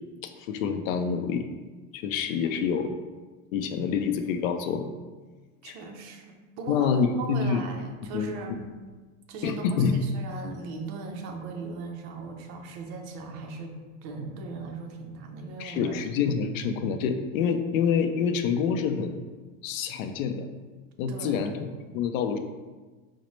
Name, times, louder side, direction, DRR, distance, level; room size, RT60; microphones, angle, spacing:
voice 1, 0.2-1.4 1.9-2.9 3.5-4.9 5.6-5.8 6.7-7.6 8.1-8.3 9.4-10.0 15.6-19.2 19.6-20.5 21.0-21.6 21.9-22.4, left 6 dB, 85° left, 7 dB, 0.5 m, -27 dB
voice 2, 5.6-8.7 9.3-16.0 21.1-21.5, right 4 dB, 45° right, 3 dB, 0.6 m, -38 dB
5.0 x 2.1 x 3.1 m, 1.3 s
supercardioid pair, 140°, 39 cm